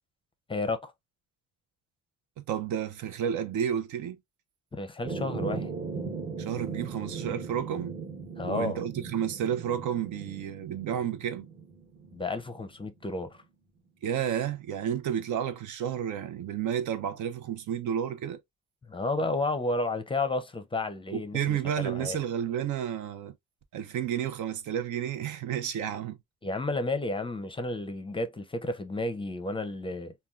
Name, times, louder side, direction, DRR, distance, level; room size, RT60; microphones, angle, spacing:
voice 1, 0.5-0.9 4.7-5.7 8.4-8.8 12.1-13.4 18.8-22.2 26.4-30.1, left 2 dB, 15° left, 0.5 m, -32 dB
voice 2, 2.4-4.2 6.4-8.0 8.4-11.5 14.0-18.4 21.1-23.3 23.7-26.2, right 9 dB, 75° right, 0.6 m, -31 dB
sound 1, 5.0-12.8, right 5 dB, 35° right, 1.1 m, -38 dB
3.6 x 2.3 x 2.3 m
cardioid pair, 90°, 30 cm